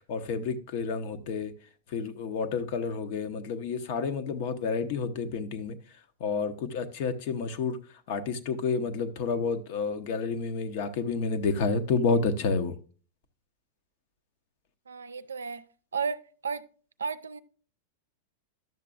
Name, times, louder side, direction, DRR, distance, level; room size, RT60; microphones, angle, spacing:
voice 1, 0.1-1.5 1.9-5.8 6.2-7.8 8.1-12.7, left 4 dB, 55° left, 0.8 m, -29 dB
voice 2, 14.9-15.6 15.9-16.6 17.0-17.4, right 5 dB, 90° right, 0.4 m, -33 dB
10.5 x 6.7 x 2.4 m
hypercardioid pair, 105°, 0 cm